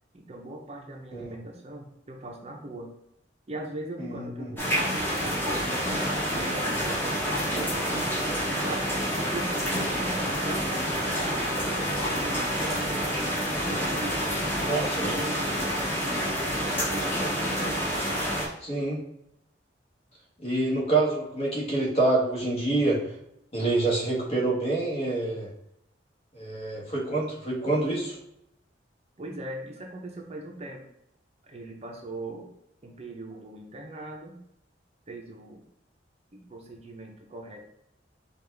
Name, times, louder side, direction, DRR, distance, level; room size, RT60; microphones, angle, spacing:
voice 1, 0.1-2.9 3.5-8.9 9.3-11.4 11.8-17.8 29.2-30.8 31.4-32.5 32.8-34.4 35.1-35.6 36.3-37.6, right 1 dB, 35° right, 1 dB, 0.6 m, -40 dB
voice 2, 4.0-4.5 14.7-15.1 18.6-19.0 20.4-23.0 23.5-25.5 26.3-28.2, right 2 dB, 35° left, -3 dB, 1.4 m, -26 dB
sound 1, 4.6-18.5, equal, 10° left, 1.1 m, -28 dB
sound 2, 6.0-16.0, equal, 20° right, 1.0 m, -42 dB
5.3 x 2.4 x 3.3 m, 0.77 s
head